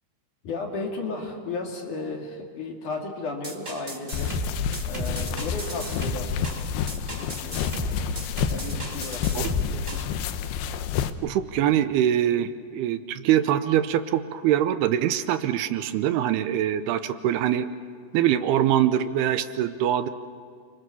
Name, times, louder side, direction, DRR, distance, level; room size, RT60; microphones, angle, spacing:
voice 1, 0.4-4.3 4.8-6.5 7.2-7.7 8.5-10.0, left 3 dB, 50° left, 1 dB, 3.7 m, -34 dB
sound 1, 3.4-10.1, right 2 dB, 20° right, 1.5 m, -34 dB
sound 2, 4.1-11.1, left 8 dB, 80° left, 2.9 m, -29 dB
voice 2, 11.2-17.7 18.1-20.1, right 11 dB, 80° right, 11 dB, 2.7 m, -23 dB
29.0 x 24.5 x 7.0 m, 2.1 s
omnidirectional pair, 4.8 m